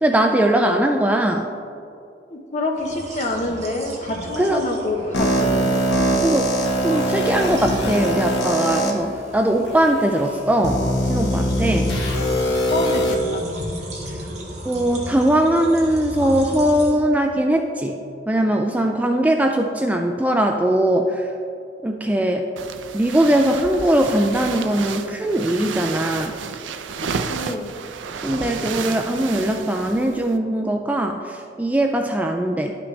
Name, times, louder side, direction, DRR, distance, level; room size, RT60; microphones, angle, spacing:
voice 1, 0.0-1.5 4.4-4.6 5.6-5.7 6.2-6.5 6.8-11.9 14.6-18.0 18.3-21.3 21.8-22.5 22.9-26.3 28.2-32.8, right 1 dB, 10° right, 3 dB, 0.3 m, -20 dB
voice 2, 2.3-5.6 11.6-12.0 12.7-13.4 27.0-27.7, left 2 dB, 40° left, 2 dB, 0.9 m, -27 dB
sound 1, 2.7-16.9, equal, 40° right, 1.5 m, -35 dB
sound 2, 5.1-8.9 9.6-9.7 10.6-13.1, equal, 70° left, 1.2 m, -21 dB
sound 3, 22.6-30.4, right 5 dB, 80° right, 0.5 m, -31 dB
11.5 x 6.0 x 3.2 m, 2.5 s
head